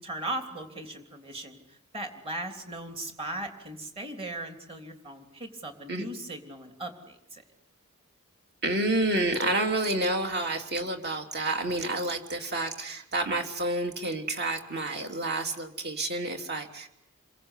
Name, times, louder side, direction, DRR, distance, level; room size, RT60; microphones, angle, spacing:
voice 1, 0.0-7.4, right 1 dB, 25° right, 5 dB, 3.4 m, -38 dB
voice 2, 8.6-16.9, right 2 dB, 50° right, 5 dB, 3.4 m, -29 dB
28.0 x 23.0 x 8.3 m, 0.74 s
head